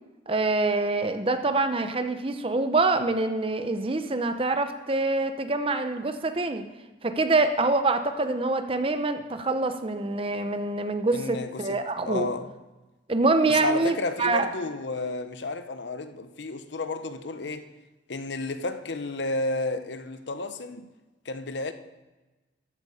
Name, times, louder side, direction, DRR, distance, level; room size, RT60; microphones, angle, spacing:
voice 1, 0.3-6.6 7.0-12.3 13.1-14.5, right 3 dB, 30° right, 0.8 m, -25 dB
voice 2, 11.1-11.8 12.1-12.5 13.5-17.7 18.1-20.9 21.3-21.7, left 2 dB, 70° left, 0.8 m, -32 dB
14.0 x 8.3 x 5.0 m
head